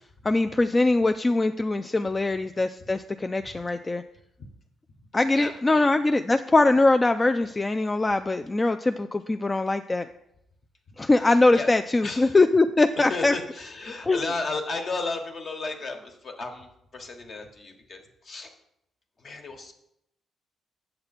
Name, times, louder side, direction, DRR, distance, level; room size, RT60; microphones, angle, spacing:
voice 1, 0.2-4.0 5.1-10.1 11.0-13.3 14.1-14.2, left 2 dB, 20° left, 8 dB, 0.3 m, -22 dB
voice 2, 5.3-5.9 11.2-11.7 12.0-12.4 13.0-18.6 19.2-19.7, left 3 dB, 50° left, 4 dB, 1.3 m, -34 dB
7.8 x 6.6 x 4.2 m, 0.80 s
cardioid pair, 90°, 0 cm